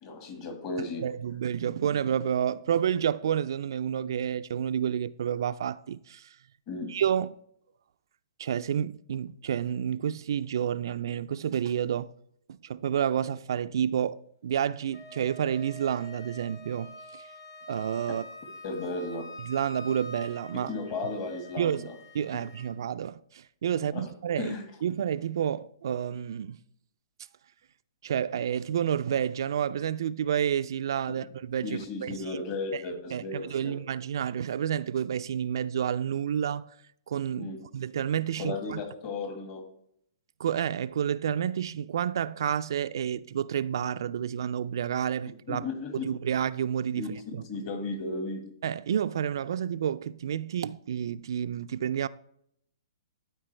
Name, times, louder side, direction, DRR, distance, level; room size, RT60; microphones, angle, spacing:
voice 1, 0.0-1.1 6.7-6.9 18.6-19.3 20.7-21.9 23.9-24.1 24.4-24.6 31.1-31.2 31.6-33.8 37.4-37.6 38.4-39.6 45.5-46.0 46.9-47.1 47.5-48.4, left 3 dB, 35° left, 1.7 m, -35 dB
voice 2, 1.0-6.4 6.9-7.3 8.4-12.1 12.5-17.3 17.7-18.2 19.4-20.7 21.6-21.9 22.1-24.5 24.8-26.6 28.0-32.3 32.7-32.8 33.1-36.7 37.1-37.5 37.7-38.8 40.4-45.7 45.9-47.1 47.3-47.4 48.6-52.1, right 9 dB, 65° right, 0.3 m, -30 dB
Wind instrument woodwind instrument, 14.9-22.8, left 1 dB, 90° left, 1.9 m, -46 dB
12.5 x 4.4 x 3.3 m
hypercardioid pair, 145°, 2 cm